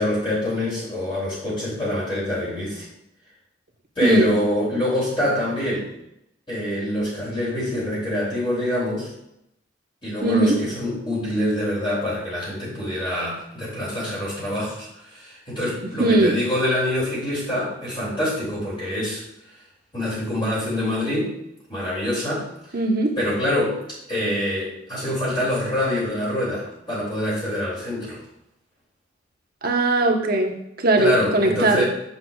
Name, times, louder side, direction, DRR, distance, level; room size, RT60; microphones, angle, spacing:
voice 1, 0.0-2.9 4.0-5.9 6.5-9.1 10.0-19.2 19.9-21.4 21.7-22.8 23.2-23.8 24.1-28.2 31.0-31.8, left 1 dB, 25° left, -8 dB, 2.6 m, -25 dB
voice 2, 10.2-10.6 16.0-16.3 22.7-23.2 29.6-31.8, right 2 dB, 50° right, 2 dB, 1.0 m, -19 dB
8.0 x 6.8 x 2.3 m, 0.82 s
head